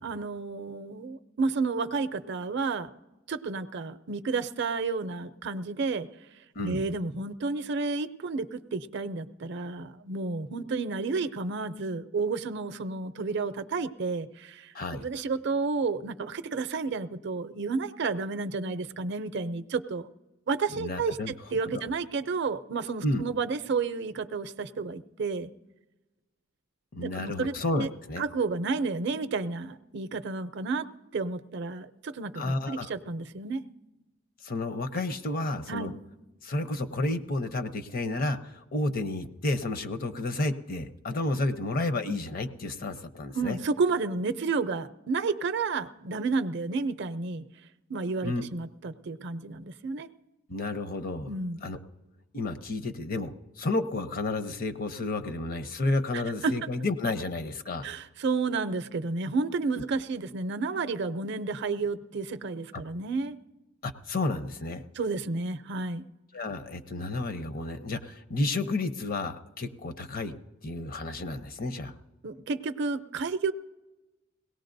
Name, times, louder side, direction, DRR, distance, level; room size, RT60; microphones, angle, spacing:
voice 1, 0.0-2.9 3.3-6.1 6.6-20.1 20.5-25.5 27.0-27.9 28.2-30.9 31.1-33.6 35.7-35.9 43.3-47.4 47.9-50.1 51.3-51.6 56.1-56.5 57.8-63.4 65.0-66.1 72.2-73.5, right 4 dB, 60° right, 11 dB, 0.5 m, -31 dB
voice 2, 20.7-21.3 21.7-21.8 23.0-23.2 26.9-28.2 32.4-32.9 34.4-35.9 36.4-43.6 48.2-48.5 50.5-51.3 51.6-51.8 52.3-57.9 59.8-59.9 63.8-64.8 66.3-70.3 70.6-71.9, left 2 dB, 45° left, 10 dB, 0.7 m, -31 dB
22.0 x 17.5 x 2.6 m, 1.1 s
head